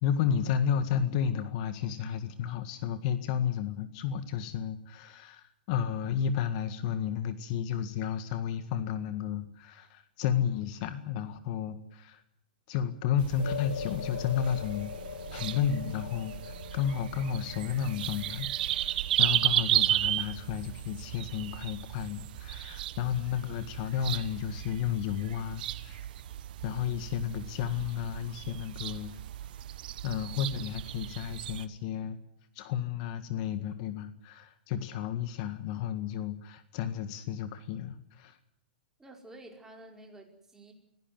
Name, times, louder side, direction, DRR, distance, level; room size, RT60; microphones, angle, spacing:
voice 1, 0.0-12.2 12.7-14.9 15.3-26.0 26.6-29.2 30.0-32.2 32.6-38.4, left 8 dB, 45° left, 11 dB, 1.8 m, -32 dB
sound 1, 13.2-31.7, right 13 dB, 60° right, 1.2 m, -34 dB
sound 2, 13.4-21.9, left 8 dB, 90° left, 1.8 m, -43 dB
voice 2, 39.0-40.7, right 2 dB, 10° right, 2 dB, 5.1 m, -50 dB
24.5 x 17.5 x 7.7 m, 0.78 s
hypercardioid pair, 130°, 5 cm